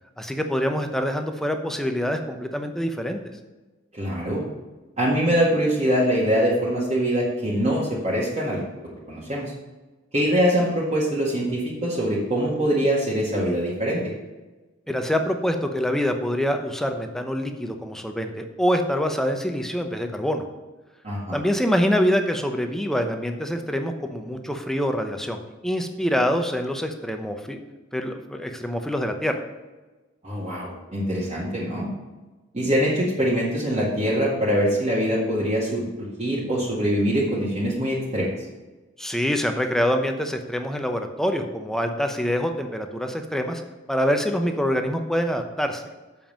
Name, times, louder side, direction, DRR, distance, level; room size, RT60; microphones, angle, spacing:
voice 1, 0.2-3.2 14.9-20.4 21.3-27.6 27.9-29.4 39.0-43.6 43.9-45.8, equal, ahead, 5 dB, 0.8 m, -25 dB
voice 2, 3.9-4.4 5.0-8.6 9.1-9.5 10.1-14.1 21.0-21.4 30.2-31.9 32.5-38.3, equal, 35° right, -7 dB, 1.9 m, -23 dB
7.7 x 5.4 x 7.4 m, 1.2 s
head